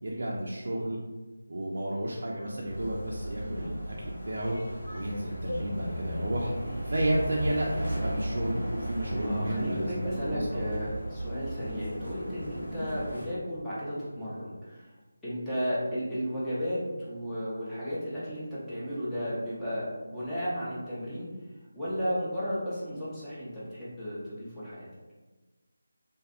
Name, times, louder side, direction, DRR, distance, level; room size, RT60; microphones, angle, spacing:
voice 1, 0.0-1.0 1.5-4.6 4.9-6.5 6.8-10.6, right 1 dB, 60° right, -3 dB, 0.4 m, -32 dB
sound 1, 2.6-13.2, equal, 90° left, 1.1 m, -35 dB
voice 2, 9.2-14.9 15.2-21.3 21.7-24.9, equal, 5° left, -12 dB, 0.5 m, -34 dB
2.6 x 2.4 x 2.3 m, 1.2 s
figure-of-eight pair, 170°, 0 cm